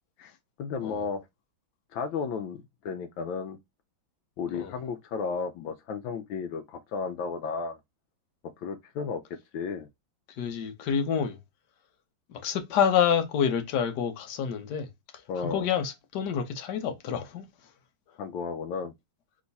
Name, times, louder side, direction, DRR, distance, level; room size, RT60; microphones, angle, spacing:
voice 1, 0.6-1.2 1.9-3.6 4.4-7.8 8.6-9.2 9.5-9.9 15.3-15.7 18.2-18.9, left 5 dB, 80° left, 1.4 m, -33 dB
voice 2, 10.4-11.4 12.3-14.9 15.4-17.4, left 8 dB, 65° left, 1.4 m, -28 dB
3.5 x 3.1 x 4.0 m
omnidirectional pair, 2.1 m